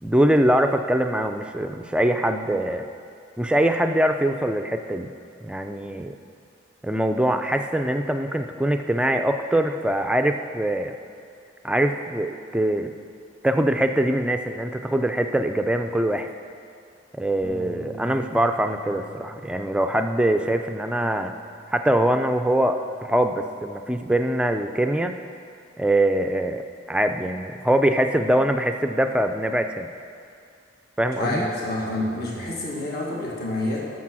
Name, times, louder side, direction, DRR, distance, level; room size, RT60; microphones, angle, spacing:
voice 1, 0.0-2.9 3.4-5.1 5.4-6.2 6.8-10.9 11.6-12.9 13.4-16.3 17.1-21.3 21.7-25.2 25.8-29.9 31.0-31.4, right 1 dB, 5° right, 6 dB, 0.4 m, -23 dB
Bass guitar, 17.4-23.7, right 2 dB, 25° left, 1.6 m, -45 dB
voice 2, 31.2-33.9, left 1 dB, 50° left, -3 dB, 1.7 m, -28 dB
13.5 x 6.4 x 6.2 m, 2.4 s
head